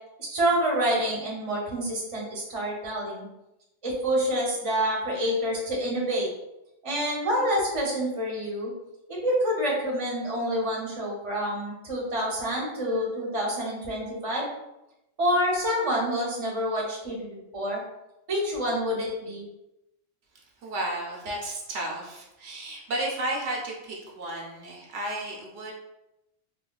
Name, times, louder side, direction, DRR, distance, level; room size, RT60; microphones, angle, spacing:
voice 1, 0.2-3.3 3.8-6.3 6.8-8.7 9.2-14.5 15.2-17.8 18.3-19.5, equal, 30° right, -3 dB, 0.8 m, -27 dB
voice 2, 20.6-25.7, right 1 dB, 80° right, -1 dB, 1.0 m, -33 dB
3.6 x 2.3 x 2.3 m, 0.89 s
omnidirectional pair, 1.2 m